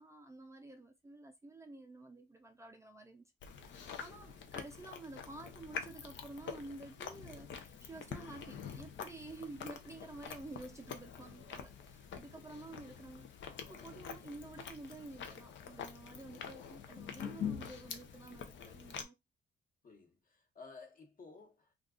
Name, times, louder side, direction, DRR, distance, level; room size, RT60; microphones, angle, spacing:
voice 1, 0.0-3.2 3.6-13.3 13.6-19.2, right 2 dB, 15° right, 0.5 m, -50 dB
Chewing mastication, 3.4-19.0, left 7 dB, 70° left, 0.6 m, -46 dB
voice 2, 4.0-4.4 12.3-12.5 19.8-21.7, left 4 dB, 45° left, 1.1 m, -56 dB
2.4 x 2.4 x 3.6 m
cardioid pair, 90°, 20 cm